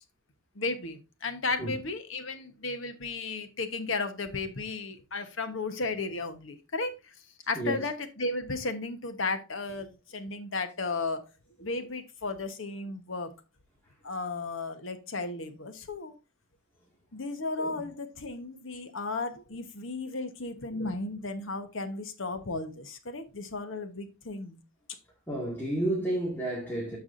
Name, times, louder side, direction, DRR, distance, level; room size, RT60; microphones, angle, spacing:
voice 1, 0.5-7.1 7.5-11.2 11.6-13.3 14.0-16.1 17.1-24.6, left 3 dB, 65° left, 1.2 m, -34 dB
voice 2, 17.6-17.9 25.3-27.0, right 1 dB, 10° left, 2.0 m, -31 dB
14.0 x 4.8 x 2.6 m
head